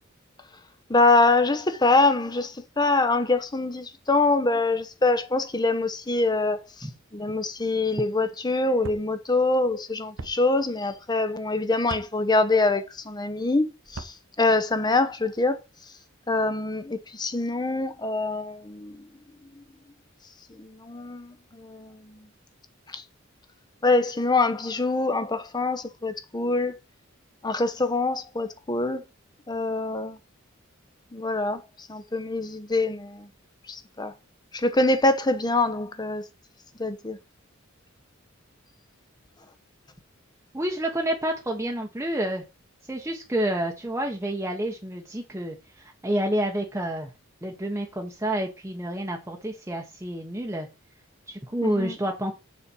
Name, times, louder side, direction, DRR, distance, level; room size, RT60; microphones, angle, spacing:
voice 1, 0.9-6.6 7.1-15.6 16.3-19.0 19.6-19.7 20.6-22.3 22.9-23.0 23.8-26.8 27.4-29.0 29.5-30.2 31.1-31.6 31.9-33.3 33.7-34.1 34.5-36.2 36.8-37.2 51.6-52.0, left 2 dB, 20° left, 0.9 m, -24 dB
sound 1, 8.8-9.0 10.2-10.3 11.8-12.1 13.8-14.2, right 3 dB, 70° right, 1.0 m, -37 dB
voice 2, 40.5-42.4 42.9-47.1 47.4-50.7 51.3-52.3, right 1 dB, 15° right, 1.0 m, -29 dB
7.0 x 4.3 x 6.1 m
head